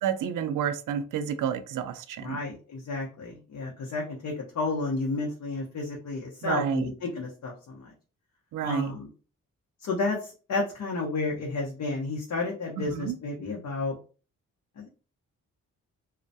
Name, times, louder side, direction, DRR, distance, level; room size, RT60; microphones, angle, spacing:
voice 1, 0.0-2.4 6.4-6.9 8.5-8.9 12.8-13.2, right 8 dB, 65° right, 9 dB, 0.4 m, -30 dB
voice 2, 2.2-7.9 8.6-9.1 9.8-13.9 14.8-14.9, left 3 dB, 60° left, -2 dB, 0.7 m, -31 dB
2.3 x 2.1 x 2.6 m, 0.36 s
supercardioid pair, 50°, 34 cm